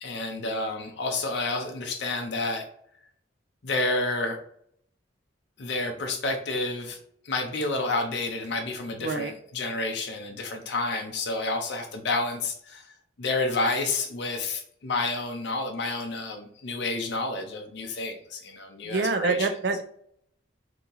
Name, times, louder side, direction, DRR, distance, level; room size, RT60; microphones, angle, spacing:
voice 1, 0.0-2.6 3.6-4.4 5.6-7.0 7.3-12.8 13.2-19.5, left 2 dB, 60° left, 3 dB, 0.6 m, -30 dB
voice 2, 9.0-9.3 18.8-19.8, right 3 dB, 55° right, 7 dB, 0.4 m, -26 dB
2.8 x 2.7 x 3.8 m, 0.66 s
head